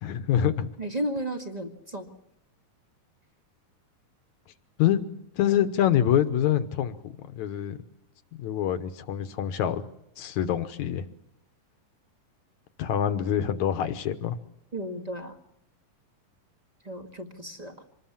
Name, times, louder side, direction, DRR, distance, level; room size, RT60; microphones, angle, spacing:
voice 1, 0.0-0.7 4.8-5.1 5.4-7.8 8.4-9.8 10.2-11.0 12.8-14.4, left 10 dB, 65° left, 10 dB, 2.2 m, -25 dB
voice 2, 0.8-2.1 14.7-15.4 16.8-17.7, right 1 dB, 20° right, 4 dB, 1.0 m, -33 dB
26.0 x 21.0 x 7.3 m, 0.80 s
omnidirectional pair, 3.9 m